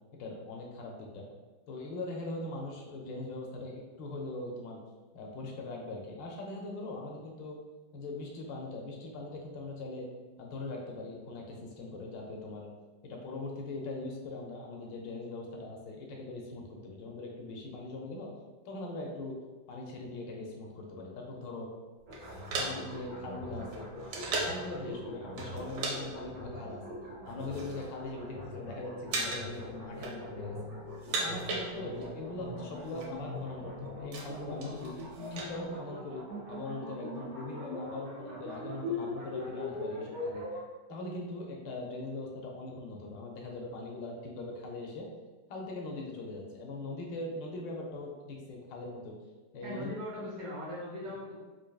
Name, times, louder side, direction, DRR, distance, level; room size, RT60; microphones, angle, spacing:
voice 1, 0.1-1.3 1.7-4.8 5.1-7.6 7.9-10.1 10.4-12.7 13.0-18.3 18.6-19.3 19.7-21.7 22.6-23.9 24.3-27.0 27.2-30.6 31.2-34.9 35.3-36.2 36.5-40.4 40.9-45.1 45.5-49.1 49.5-49.9, left 2 dB, 75° left, 0 dB, 1.2 m, -41 dB
sound 1, 22.1-40.6, left 1 dB, 50° right, 1.0 m, -41 dB
sound 2, 22.1-24.7 25.4-26.0 26.2-26.4 27.1-27.9 28.2-28.7 29.1-29.6 29.9-30.5 30.9-32.2 32.4-32.5 32.7-33.1 33.6-35.5, right 3 dB, 90° right, 1.5 m, -37 dB
voice 2, 49.6-51.4, left 1 dB, 65° right, -9 dB, 1.4 m, -39 dB
4.6 x 2.5 x 2.3 m, 1.3 s
omnidirectional pair, 2.2 m